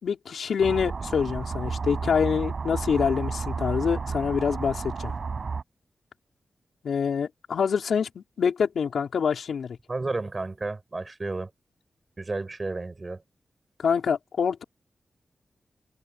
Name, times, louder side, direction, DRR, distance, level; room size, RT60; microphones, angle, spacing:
voice 1, 0.0-5.1 6.8-9.8 13.8-14.6, left 6 dB, 85° left, 4.6 m, -26 dB
sound 1, 0.6-5.6, right 5 dB, 55° right, 7.1 m, -32 dB
voice 2, 9.9-11.5 12.2-13.2, right 3 dB, 30° right, 6.4 m, -32 dB
wide cardioid pair, 100°, 0 cm